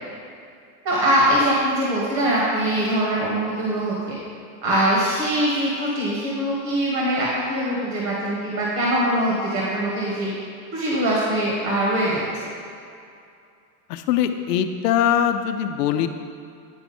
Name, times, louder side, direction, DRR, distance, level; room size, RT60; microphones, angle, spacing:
voice 1, 0.8-4.2 4.6-10.3 10.7-12.2, right 1 dB, 40° right, -5 dB, 1.6 m, -22 dB
voice 2, 13.9-16.1, left 9 dB, 90° left, 8 dB, 0.7 m, -22 dB
9.7 x 4.6 x 4.3 m, 2.5 s
supercardioid pair, 150°, 47 cm